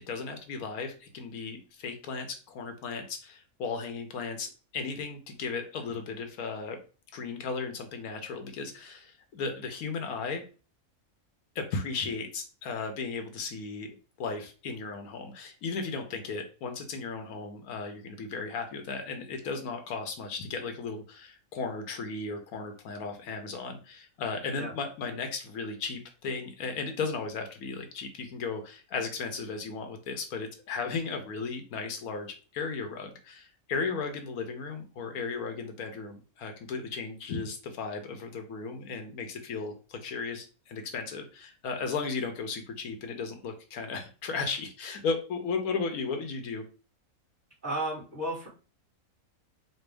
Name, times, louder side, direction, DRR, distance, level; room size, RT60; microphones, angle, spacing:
voice 1, 0.0-6.8 7.1-10.4 11.5-46.6, left 4 dB, 80° left, 5 dB, 1.2 m, -35 dB
voice 2, 47.6-48.5, right 1 dB, 35° right, -7 dB, 2.0 m, -33 dB
4.3 x 2.3 x 3.3 m, 0.35 s
omnidirectional pair, 1.6 m